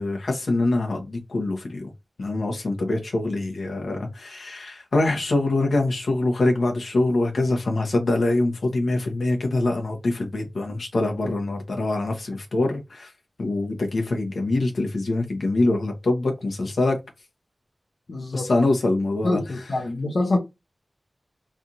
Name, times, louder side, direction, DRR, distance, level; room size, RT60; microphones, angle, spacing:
voice 1, 0.0-1.9 2.2-13.1 13.4-17.0 18.3-19.4, left 2 dB, 85° left, 1.0 m, -24 dB
voice 2, 18.1-18.5 19.2-20.4, left 2 dB, 70° left, 0.8 m, -25 dB
3.4 x 2.5 x 2.8 m
wide cardioid pair, 75°, 0 cm